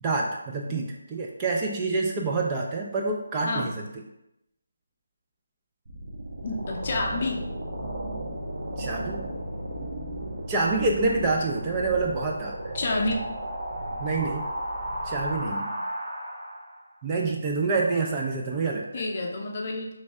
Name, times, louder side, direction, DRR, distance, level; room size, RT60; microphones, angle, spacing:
voice 1, 0.0-3.9 8.8-9.3 10.5-12.7 14.0-14.5 15.1-15.7 17.0-18.8, right 3 dB, 20° right, -1 dB, 0.4 m, -27 dB
sound 1, 5.8-16.8, right 1 dB, 55° right, 0.9 m, -34 dB
voice 2, 6.4-7.4 12.7-13.1 18.9-19.9, left 2 dB, 40° left, 0 dB, 0.6 m, -29 dB
3.1 x 2.6 x 3.3 m, 0.85 s
figure-of-eight pair, 155°, 0 cm